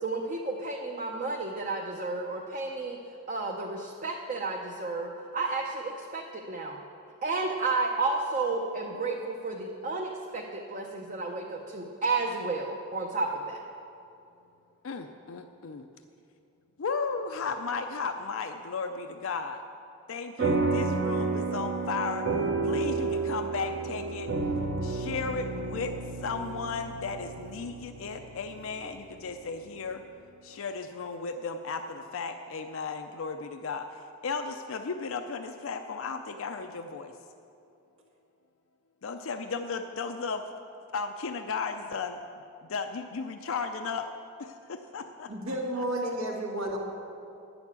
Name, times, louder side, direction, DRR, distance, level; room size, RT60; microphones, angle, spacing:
voice 1, 0.0-3.0 3.3-6.8 7.2-13.6, right 3 dB, 35° right, 0 dB, 0.7 m, -32 dB
voice 2, 14.8-15.9 16.8-19.6 20.1-22.3 22.6-24.3 24.8-25.9 26.2-30.0 30.4-37.1 39.0-40.4 40.9-42.2 42.6-44.1 44.4-45.3, left 4 dB, 65° left, 6 dB, 0.5 m, -35 dB
sound 1, 20.4-29.1, right 3 dB, 50° right, 1.0 m, -31 dB
voice 3, 45.3-46.8, right 1 dB, 80° right, -1 dB, 1.9 m, -31 dB
9.8 x 7.0 x 8.3 m, 2.6 s
head